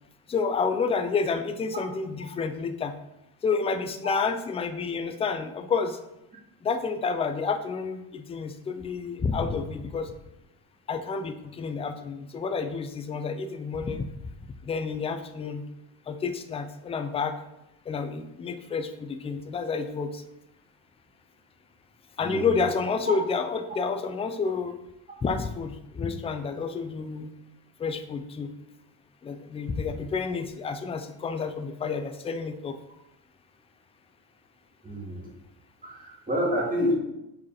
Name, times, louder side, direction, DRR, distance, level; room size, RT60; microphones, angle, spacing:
voice 1, 0.3-2.9 3.4-6.0 6.6-10.1 10.9-14.1 14.6-15.6 16.1-17.3 17.9-20.2 22.2-24.8 25.2-27.3 27.8-28.5 29.2-32.8, left 5 dB, 15° left, 8 dB, 0.3 m, -29 dB
voice 2, 34.8-35.3 35.8-36.9, equal, 15° right, -4 dB, 2.3 m, -28 dB
4.8 x 4.7 x 5.7 m, 0.87 s
cardioid pair, 120°, 46 cm